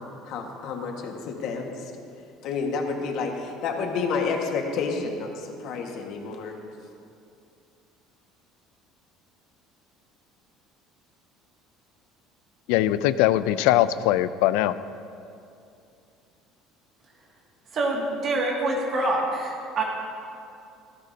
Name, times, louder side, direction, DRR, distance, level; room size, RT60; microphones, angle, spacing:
voice 1, 0.0-1.8 2.4-6.5, left 4 dB, 55° left, 2 dB, 1.6 m, -30 dB
voice 2, 12.7-14.8, left 13 dB, 80° left, 14 dB, 0.4 m, -21 dB
voice 3, 17.7-19.8, right 2 dB, 35° right, -2 dB, 2.2 m, -26 dB
17.0 x 15.0 x 2.8 m, 2.6 s
cardioid pair, 155°, 0 cm